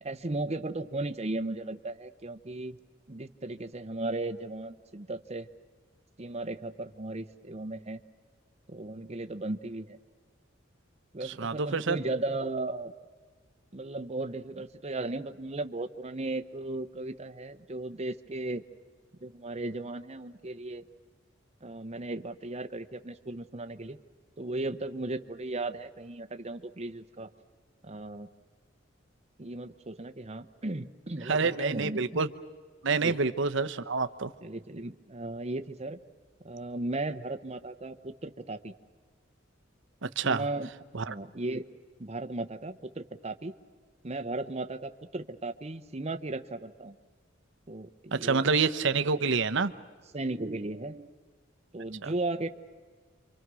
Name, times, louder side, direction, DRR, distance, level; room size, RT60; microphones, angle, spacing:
voice 1, 0.0-2.8 3.1-5.5 6.2-8.0 8.7-10.0 11.1-12.9 13.7-18.6 19.2-20.8 21.6-24.0 24.4-27.3 27.8-28.3 29.4-32.2 33.0-33.2 34.4-36.0 36.4-38.7 40.2-40.7 41.1-41.7 42.0-43.5 44.0-47.0 47.7-48.4 50.1-51.1 51.7-52.5, right 2 dB, 35° right, 9 dB, 0.9 m, -36 dB
voice 2, 11.2-12.0 31.2-32.3 32.8-34.3 40.0-40.4 40.9-41.1 48.1-49.7 52.0-52.1, right 4 dB, 65° right, 10 dB, 0.9 m, -27 dB
28.5 x 25.0 x 6.3 m, 1.5 s
head